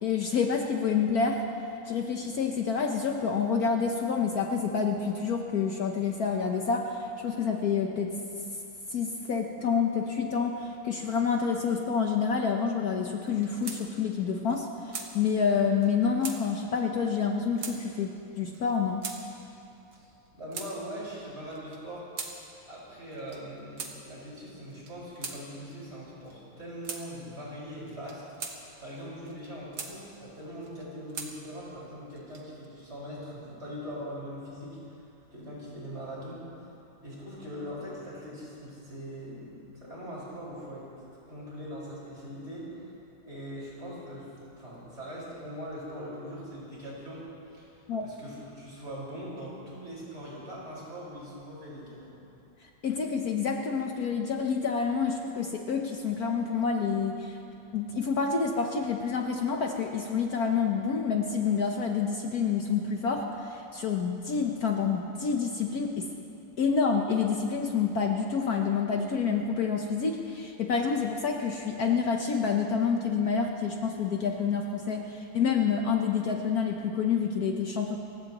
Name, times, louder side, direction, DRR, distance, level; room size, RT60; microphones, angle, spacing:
voice 1, 0.0-1.4 1.9-8.1 8.9-19.0 47.9-48.1 52.8-57.4 57.7-66.1 66.6-78.0, left 6 dB, 60° left, 2 dB, 1.4 m, -28 dB
sound 1, 13.3-13.8 14.1-14.2 14.5-15.1 15.8-15.9 16.2-16.4 17.2-17.3 17.6-17.8 18.5-18.6 19.0-19.2 19.9-20.7 21.5-22.3 23.1-23.4 23.8-23.9 24.7-25.4 26.2-26.4 26.8-27.0 27.9-28.6 29.2-29.9 30.6-31.3 32.1-32.7, right 5 dB, 60° right, 1.9 m, -39 dB
voice 2, 20.0-35.0 35.3-36.4 37.0-40.9 41.3-42.9 43.2-44.3 44.6-47.3 47.5-52.2, equal, 35° right, -7 dB, 5.5 m, -41 dB
29.5 x 16.0 x 3.0 m, 2.7 s
omnidirectional pair, 2.0 m